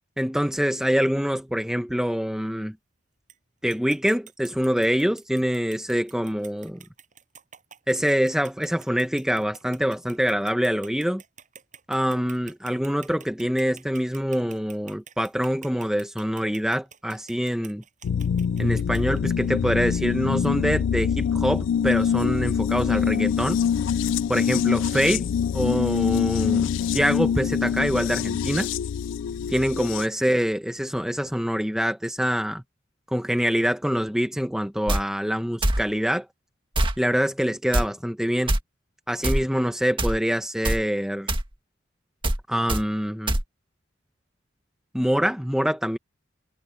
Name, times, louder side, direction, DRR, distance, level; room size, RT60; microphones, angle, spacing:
voice 1, 0.2-2.7 3.6-6.8 7.9-11.2 11.9-17.8 18.6-23.6 24.3-25.3 25.5-28.7 29.5-32.6 33.1-36.3 37.0-38.5 39.1-41.3 42.5-43.4 44.9-46.0, equal, 5° right, 0.9 m, -25 dB
sound 1, 3.3-3.4 3.7-19.5, right 8 dB, 40° right, 6.6 m, -48 dB
sound 2, 18.0-30.1, left 7 dB, 75° left, 0.3 m, -25 dB
sound 3, 34.9-35.0 35.6-35.8 36.7-37.0 37.7-37.9 38.5-38.6 39.2-39.4 40.0-40.2 40.6-40.8 41.3-41.5 42.2-42.4 42.7-42.8 43.3-43.4, right 1 dB, 25° right, 1.7 m, -23 dB
head